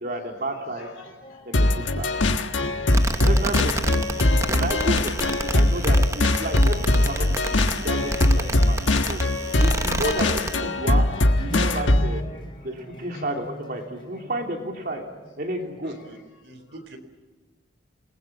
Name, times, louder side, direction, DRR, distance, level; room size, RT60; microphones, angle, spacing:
voice 1, 0.0-0.9 1.4-2.1 3.2-4.0 4.5-7.6 7.8-9.2 9.6-11.1 11.4-12.2 12.6-15.0 15.4-16.0, right 1 dB, 50° right, 2 dB, 3.0 m, -31 dB
voice 2, 0.8-1.8 2.1-2.4 2.8-3.9 7.7-8.5 9.5-10.0 10.4-10.5 12.3-13.3 15.8-15.9, left 3 dB, 55° left, 0 dB, 3.9 m, -49 dB
sound 1, 1.2-8.9 9.5-9.6 10.0-10.4 10.7-16.3, equal, 25° left, 3.1 m, -42 dB
sound 2, 1.5-12.2, left 1 dB, 85° left, 1.4 m, -21 dB
sound 3, 2.9-10.5, right 2 dB, 15° right, 0.8 m, -30 dB
voice 3, 15.8-16.2 16.4-17.0, right 2 dB, 75° right, 6 dB, 4.1 m, -44 dB
28.0 x 20.5 x 7.3 m, 1.2 s
head